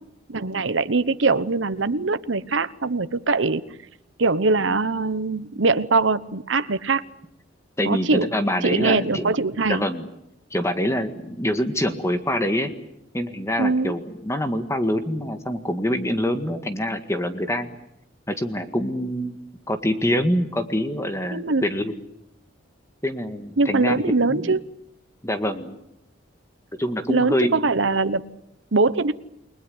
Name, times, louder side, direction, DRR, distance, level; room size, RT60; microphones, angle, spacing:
voice 1, 0.3-3.6 4.2-7.0 7.8-8.3 8.6-9.8 13.6-13.9 21.3-21.7 23.6-24.6 27.1-28.2 28.7-29.1, right 3 dB, 70° right, 12 dB, 1.0 m, -22 dB
voice 2, 7.8-9.4 9.7-10.1 10.5-12.7 13.1-17.7 18.3-19.4 19.7-21.9 23.0-24.4 25.2-25.8 26.8-27.6, equal, 15° left, 8 dB, 1.8 m, -25 dB
29.5 x 21.0 x 8.0 m, 0.82 s
head